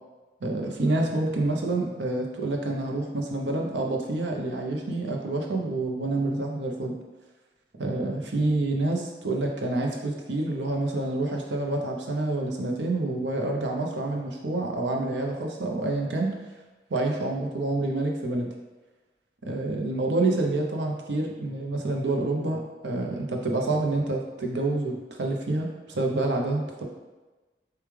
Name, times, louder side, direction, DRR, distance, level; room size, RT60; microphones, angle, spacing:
voice 1, 0.4-7.0 7.8-16.3 16.9-18.5 19.4-26.8, right 2 dB, 90° right, 1 dB, 0.7 m, -28 dB
6.8 x 2.4 x 3.2 m, 1.2 s
head